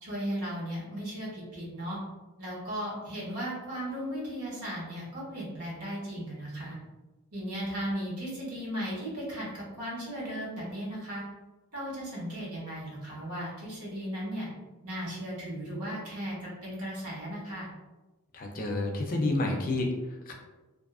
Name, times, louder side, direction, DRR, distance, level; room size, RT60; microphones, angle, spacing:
voice 1, 0.0-2.0 2.4-6.8 7.3-11.2 11.7-14.5 14.8-17.7, equal, 75° right, -6 dB, 1.0 m, -36 dB
voice 2, 18.3-20.3, left 2 dB, 40° left, 2 dB, 0.4 m, -30 dB
2.6 x 2.4 x 2.3 m, 1.1 s
head